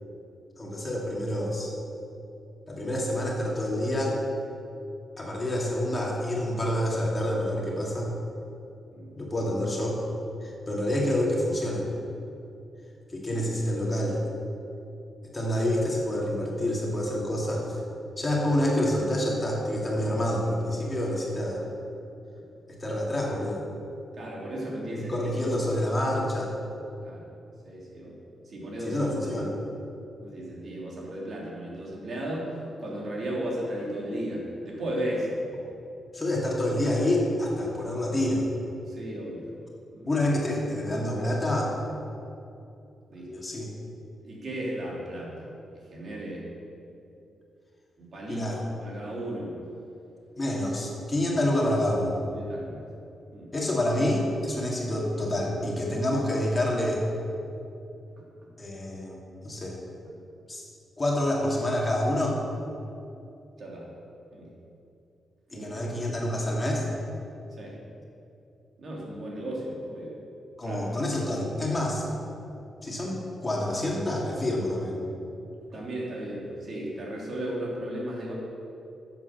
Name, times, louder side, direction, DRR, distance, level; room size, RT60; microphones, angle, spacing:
voice 1, 0.6-1.7 2.7-4.2 5.2-8.1 9.2-10.0 10.4-11.9 13.1-14.2 15.2-17.8 18.2-21.6 22.7-23.6 24.9-26.5 28.8-29.6 36.1-38.5 40.1-41.7 43.3-43.7 48.3-48.6 50.4-52.1 53.5-57.0 58.6-59.8 60.5-60.7 61.0-62.4 65.5-66.9 70.6-72.1 72.8-75.0, left 1 dB, 20° left, -3 dB, 2.5 m, -27 dB
voice 2, 24.1-25.1 25.5-25.6 27.0-27.2 27.6-28.2 28.4-29.0 30.2-32.5 32.8-35.4 38.9-39.4 39.9-40.1 43.1-43.3 44.2-45.5 45.9-46.5 48.0-49.7 52.3-52.8 53.3-53.5 58.2-58.5 63.6-63.9 64.3-64.5 65.5-65.7 67.6-67.8 68.8-70.1 70.6-70.9 75.7-78.3, right 1 dB, 50° right, -4 dB, 3.2 m, -35 dB
11.0 x 7.8 x 6.8 m, 2.7 s
cardioid pair, 125°, 0 cm